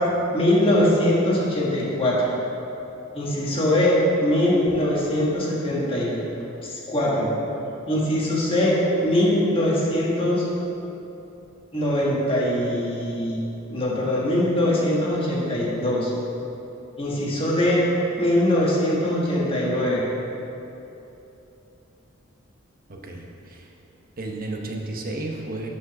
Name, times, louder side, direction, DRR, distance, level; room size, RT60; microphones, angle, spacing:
voice 1, 0.3-2.3 3.1-3.9 4.2-6.1 6.6-7.3 7.9-8.8 9.0-10.4 11.7-13.4 13.7-16.1 17.0-17.8 18.2-20.0, left 1 dB, 25° left, -5 dB, 1.5 m, -22 dB
voice 2, 22.9-23.7 24.2-25.7, right 2 dB, 45° right, 1 dB, 0.8 m, -33 dB
6.5 x 5.0 x 5.9 m, 3.0 s
head